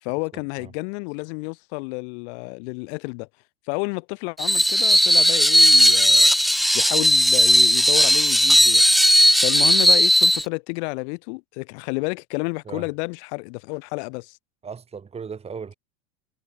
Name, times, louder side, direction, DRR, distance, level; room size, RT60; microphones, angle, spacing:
voice 1, 0.0-3.3 3.7-6.3 6.7-8.8 9.4-14.4, left 31 dB, 55° left, 3.5 m, -30 dB
Screech, 4.4-10.4, equal, ahead, 0.4 m, -16 dB
voice 2, 14.6-15.7, right 6 dB, 15° right, 2.9 m, -36 dB
supercardioid pair, 135°, 40 cm